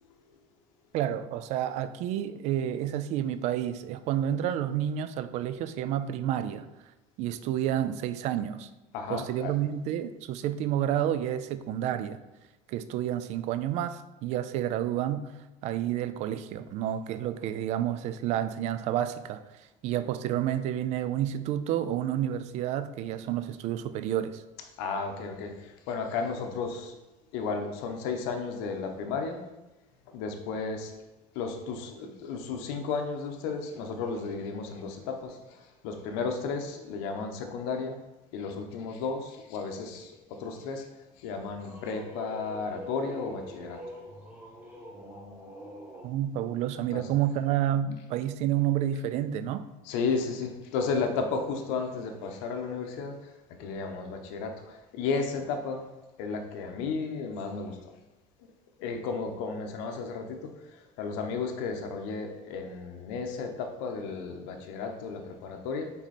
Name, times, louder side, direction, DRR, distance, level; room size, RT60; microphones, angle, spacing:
voice 1, 0.9-6.7 7.2-8.7 9.1-12.2 12.7-15.3 15.6-24.4 46.0-49.7, right 11 dB, 50° right, 12 dB, 0.4 m, -30 dB
voice 2, 8.9-9.5 24.8-27.0 27.3-29.4 30.1-30.9 31.3-38.0 38.3-43.8 46.9-47.1 49.8-53.3 53.6-55.9 56.2-57.9 58.4-58.5 58.8-65.9, left 4 dB, 80° left, 5 dB, 1.0 m, -33 dB
sound 1, 41.2-46.1, equal, 10° right, 1.3 m, -44 dB
6.0 x 4.2 x 4.3 m, 1.0 s
cardioid pair, 150°, 14 cm